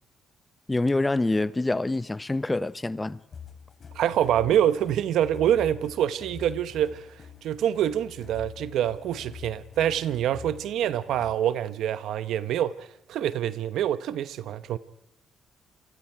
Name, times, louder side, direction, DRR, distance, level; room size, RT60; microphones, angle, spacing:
voice 1, 0.7-3.2, left 2 dB, 15° left, 0.8 m, -26 dB
sound 1, 3.3-11.5, left 7 dB, 45° left, 3.8 m, -45 dB
voice 2, 3.9-12.7 13.1-14.8, right 10 dB, 80° right, 1.0 m, -26 dB
28.0 x 24.0 x 4.7 m
cardioid pair, 90°, 0 cm